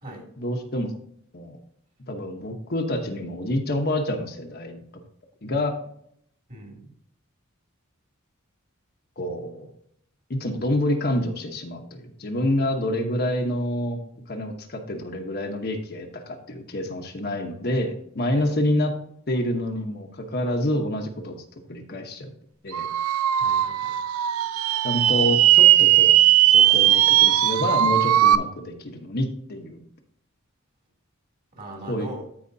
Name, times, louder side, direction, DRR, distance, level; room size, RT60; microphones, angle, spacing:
voice 1, 0.4-0.9 1.3-1.6 2.1-4.8 5.4-5.7 9.2-9.7 10.3-14.0 14.3-18.9 19.3-21.4 21.7-22.3 22.6-22.9 24.8-26.2 26.5-29.8 31.9-32.2, left 1 dB, 45° left, 3 dB, 1.0 m, -27 dB
voice 2, 6.5-6.9 18.3-18.5 23.4-24.0 31.6-32.2, right 1 dB, 40° right, -1 dB, 2.8 m, -40 dB
sound 1, 22.7-28.4, right 12 dB, 85° right, 0.4 m, -18 dB
13.5 x 5.1 x 2.7 m, 0.69 s
head